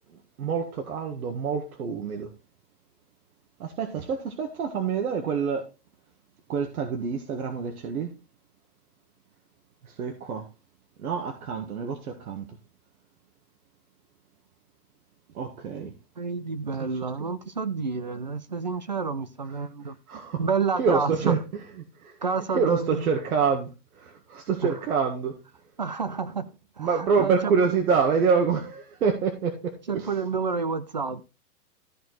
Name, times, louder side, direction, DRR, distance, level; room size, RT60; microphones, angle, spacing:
voice 1, 0.4-2.3 3.6-5.6 6.5-8.1 10.0-10.4 11.0-12.5 15.4-15.9 16.8-16.9 20.1-20.4 20.8-21.4 22.0-22.1 22.5-23.7 24.0-25.3 26.8-29.5 29.9-30.1, right 6 dB, 65° right, 1.7 m, -26 dB
voice 2, 16.2-20.0 20.4-21.4 22.2-23.1 24.6-24.8 25.8-26.5 26.8-27.5 29.9-31.2, right 5 dB, 30° right, 0.4 m, -29 dB
14.0 x 4.7 x 3.9 m
hypercardioid pair, 160°, 47 cm